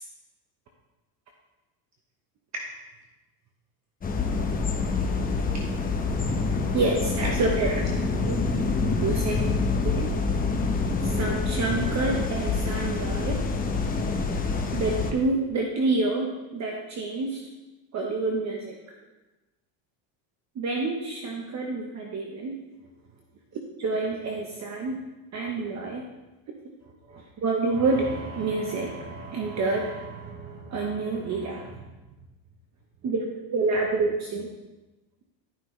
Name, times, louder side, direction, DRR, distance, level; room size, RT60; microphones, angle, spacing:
sound 1, 4.0-15.1, left 4 dB, 20° left, 0.9 m, -26 dB
voice 1, 6.7-7.9 8.2-8.4 9.0-9.6 9.8-10.1 11.0-13.4 14.7-17.4 17.9-18.8 20.5-22.5 23.8-25.0 25.3-26.0 27.1-31.9 33.0-34.5, right 3 dB, 35° right, 0 dB, 1.2 m, -28 dB
13.5 x 5.7 x 3.3 m, 1.1 s
supercardioid pair, 120°, 47 cm